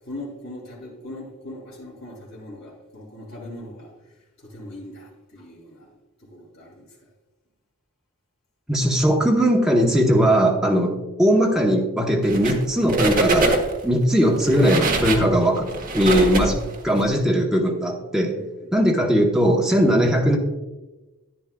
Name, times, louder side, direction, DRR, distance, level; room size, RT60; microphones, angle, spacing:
voice 1, 0.0-5.9 6.2-6.9 18.3-18.8, left 1 dB, 60° left, -3 dB, 2.7 m, -40 dB
voice 2, 8.7-13.5 13.8-16.6 16.8-18.4 18.7-20.4, equal, 5° right, -1 dB, 0.9 m, -19 dB
sound 1, 12.2-12.6 12.9-13.8 14.4-17.0, right 2 dB, 40° right, 1.2 m, -23 dB
10.5 x 9.9 x 2.2 m, 1.1 s
head